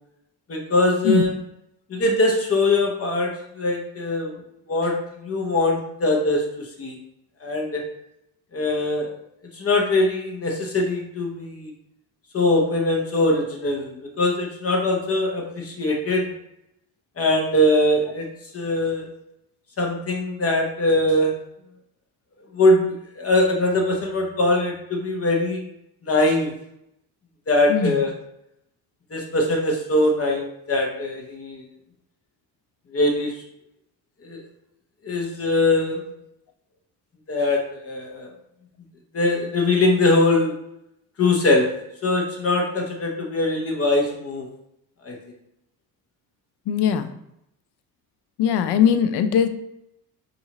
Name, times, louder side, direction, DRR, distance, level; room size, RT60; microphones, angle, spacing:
voice 1, 0.5-1.3 1.9-4.3 4.7-7.0 7.4-7.8 8.5-9.1 9.6-11.7 12.3-16.3 17.2-18.3 18.5-19.0 19.8-21.3 22.5-25.6 26.0-26.5 27.5-28.1 29.1-31.7 32.9-33.3 34.2-34.4 35.0-36.0 37.3-38.3 39.1-40.5 41.2-41.7 42.0-44.5 45.0-45.2, left 2 dB, 35° left, 1 dB, 0.9 m, -22 dB
voice 2, 46.7-47.1 48.4-49.5, left 8 dB, 75° left, 9 dB, 0.6 m, -20 dB
5.5 x 2.6 x 3.0 m, 0.79 s
cardioid pair, 95°, 39 cm